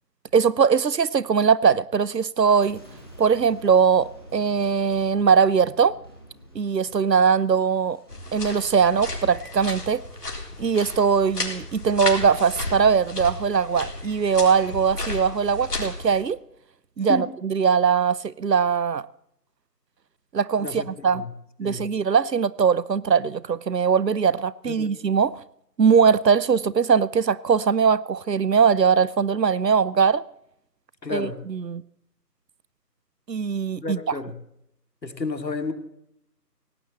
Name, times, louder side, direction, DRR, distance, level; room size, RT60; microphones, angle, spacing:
voice 1, 0.3-2.8 3.2-5.9 6.5-8.0 8.3-10.0 10.6-16.4 17.0-19.0 20.3-21.2 21.6-25.3 25.8-30.2 31.1-31.8 33.3-34.0, right 6 dB, 75° right, 0.8 m, -21 dB
Boom, 2.4-11.7 12.3-12.7, equal, 15° left, 1.5 m, -50 dB
sound 1, 8.1-16.2, left 2 dB, 65° left, 3.9 m, -34 dB
voice 2, 20.6-20.9 21.1-21.3 21.6-21.8 24.7-24.9 31.0-31.4 33.8-34.3 35.0-35.7, left 3 dB, 80° left, 2.6 m, -31 dB
17.5 x 10.5 x 7.6 m
figure-of-eight pair, 170°, 50 cm